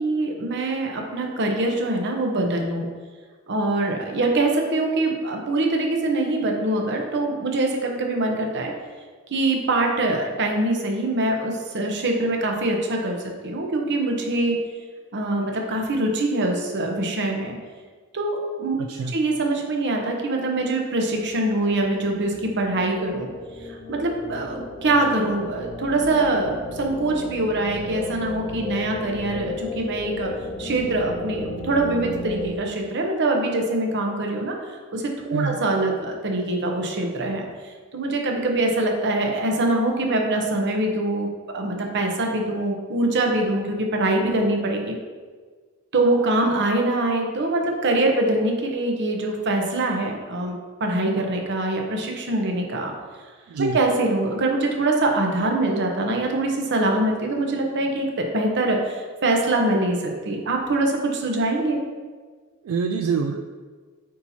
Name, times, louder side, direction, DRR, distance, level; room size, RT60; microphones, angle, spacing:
voice 1, 0.0-2.9 3.5-8.7 9.3-13.2 13.4-14.6 15.1-17.6 18.1-18.8 19.1-23.3 23.9-30.3 30.6-34.5 34.9-37.5 37.9-41.3 41.5-44.9 45.9-52.9 53.6-59.0 59.2-61.8, right 2 dB, 55° right, 2 dB, 0.9 m, -23 dB
sound 1, 21.2-32.5, left 2 dB, 45° left, 1.0 m, -35 dB
voice 2, 62.6-63.5, right 5 dB, 75° right, 4 dB, 0.3 m, -25 dB
8.6 x 4.2 x 2.8 m, 1.5 s
head